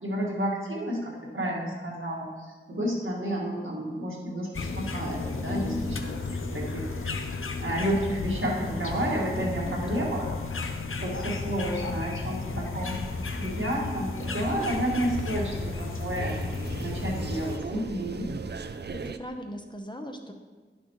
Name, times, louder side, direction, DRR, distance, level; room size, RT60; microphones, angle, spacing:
voice 1, 0.0-7.1 7.6-10.3 10.5-10.7 11.0-16.4 16.8-18.3, right 1 dB, 80° right, -3 dB, 1.8 m, -31 dB
sound 1, 4.5-17.6, left 3 dB, 85° left, 0.6 m, -33 dB
sound 2, 14.2-19.2, right 4 dB, 55° right, 0.4 m, -39 dB
voice 2, 18.9-20.3, equal, 20° left, 4 dB, 0.8 m, -39 dB
10.5 x 6.1 x 3.1 m, 1.4 s
wide cardioid pair, 50°, 21 cm